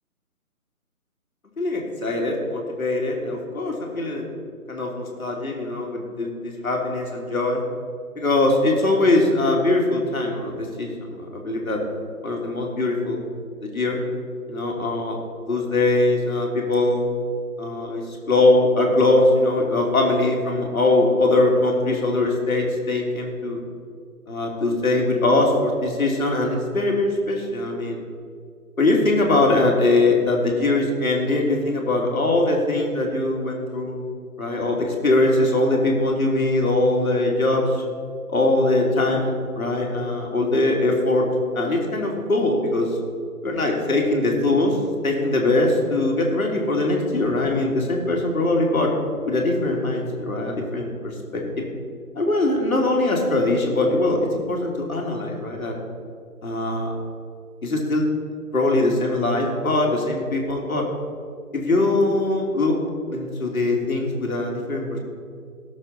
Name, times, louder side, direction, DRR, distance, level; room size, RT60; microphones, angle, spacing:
voice 1, 1.6-4.3 4.7-7.6 8.2-11.8 12.2-13.2 13.6-14.0 14.5-15.2 15.5-17.0 17.6-23.6 24.3-28.0 28.8-34.0 34.4-37.8 38.3-41.3 41.5-42.9 43.4-44.8 45.0-48.9 49.3-51.4 52.1-54.2 54.5-55.7 56.4-56.9 57.6-58.1 58.5-60.8 61.5-62.8 63.1-65.0, left 2 dB, 65° left, 0 dB, 2.9 m, -21 dB
18.5 x 6.6 x 4.0 m, 2.2 s
figure-of-eight pair, 150°, 45 cm